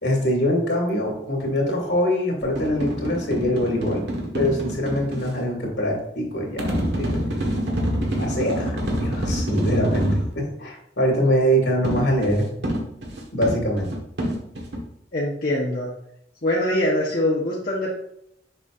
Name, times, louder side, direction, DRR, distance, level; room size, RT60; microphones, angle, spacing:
voice 1, 0.0-4.0 4.3-7.2 8.2-12.5 13.3-13.9, equal, 80° left, 0 dB, 2.4 m, -23 dB
sound 1, 2.4-5.3 6.6-10.3 11.8-14.8, equal, 75° right, 1.4 m, -27 dB
voice 2, 15.1-15.9 16.4-17.9, left 1 dB, 55° left, -5 dB, 1.0 m, -23 dB
6.9 x 5.9 x 2.5 m, 0.73 s
head